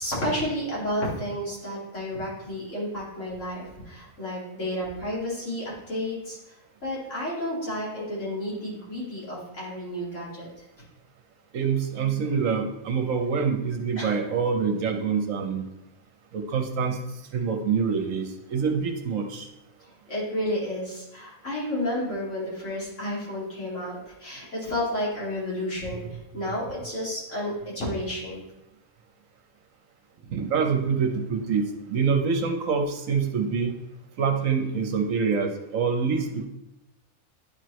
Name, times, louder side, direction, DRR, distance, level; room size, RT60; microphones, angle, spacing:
voice 1, 0.0-6.4 6.8-10.5 14.0-14.1 20.1-26.0 26.3-28.4, left 1 dB, 55° left, -7 dB, 2.8 m, -31 dB
voice 2, 11.5-15.7 16.3-17.0 17.3-19.5 30.3-33.8 34.2-36.5, right 5 dB, 70° right, 4 dB, 1.1 m, -26 dB
10.5 x 4.5 x 3.1 m, 0.92 s
omnidirectional pair, 1.5 m